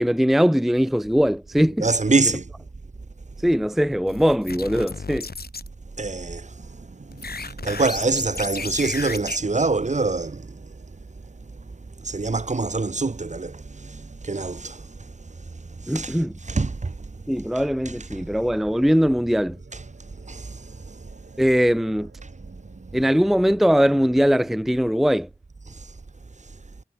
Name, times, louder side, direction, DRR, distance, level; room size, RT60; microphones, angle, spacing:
voice 1, 0.0-2.0 3.4-5.3 15.9-16.4 17.3-19.6 21.4-22.1 22.9-25.3, equal, ahead, 0.5 m, -21 dB
voice 2, 1.8-2.5 6.0-6.5 7.4-10.6 12.0-14.9 15.8-16.1 16.5-16.9 20.3-20.6, right 3 dB, 45° right, 1.2 m, -25 dB
sound 1, 3.9-5.7 7.1-9.4, left 4 dB, 65° left, 2.0 m, -34 dB
sound 2, 6.6-24.8, right 3 dB, 70° right, 5.3 m, -50 dB
wide cardioid pair, 60°, 17 cm